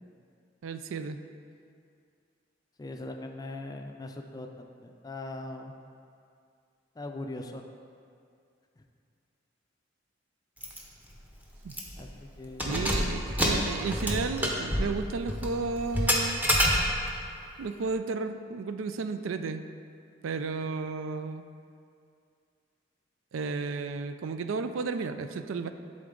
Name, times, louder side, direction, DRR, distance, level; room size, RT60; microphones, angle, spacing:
voice 1, 0.6-1.2 11.6-11.7 12.7-16.4 17.6-19.6 20.2-21.4 23.3-25.7, right 4 dB, 85° right, 9 dB, 0.4 m, -33 dB
voice 2, 2.8-5.7 7.0-7.6 12.0-13.1, left 2 dB, 20° left, 4 dB, 0.4 m, -40 dB
Keys jangling, 10.6-10.8 11.1-11.2 11.7-12.1 12.5-17.2, equal, 10° right, 0.8 m, -28 dB
11.5 x 3.9 x 3.8 m, 2.4 s
head